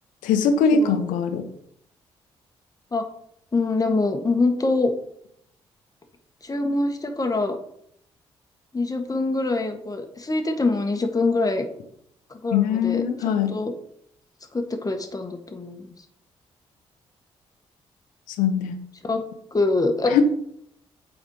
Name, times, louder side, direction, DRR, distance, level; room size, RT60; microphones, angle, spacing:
voice 1, 0.2-1.4 12.5-13.5 18.3-18.8 20.1-20.2, left 6 dB, 75° left, 9 dB, 0.9 m, -21 dB
voice 2, 3.5-4.9 6.4-7.5 8.7-11.7 12.3-13.7 14.5-15.9 19.0-19.2 19.5-20.2, left 3 dB, 25° left, 5 dB, 1.4 m, -24 dB
8.0 x 4.3 x 4.7 m, 0.71 s
hypercardioid pair, 40°, 14 cm